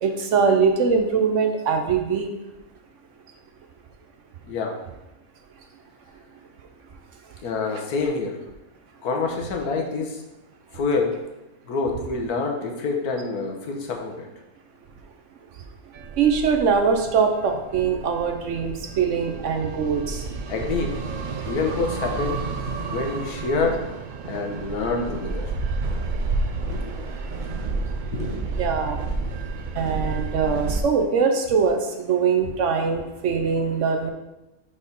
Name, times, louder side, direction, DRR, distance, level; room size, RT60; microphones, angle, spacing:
voice 1, 0.0-2.3 16.2-20.2 28.6-29.0 29.8-34.1, right 5 dB, 60° right, 5 dB, 0.9 m, -22 dB
voice 2, 4.5-4.8 7.4-8.4 9.0-10.2 10.7-11.2 11.7-14.3 20.5-21.0 21.4-22.4 22.9-23.9 24.2-25.5 26.7-27.0 28.1-28.4, left 4 dB, 90° left, 2 dB, 1.5 m, -27 dB
sound 1, 15.9-30.8, right 3 dB, 85° right, 0.4 m, -30 dB
5.3 x 4.2 x 5.3 m, 0.97 s
omnidirectional pair, 1.6 m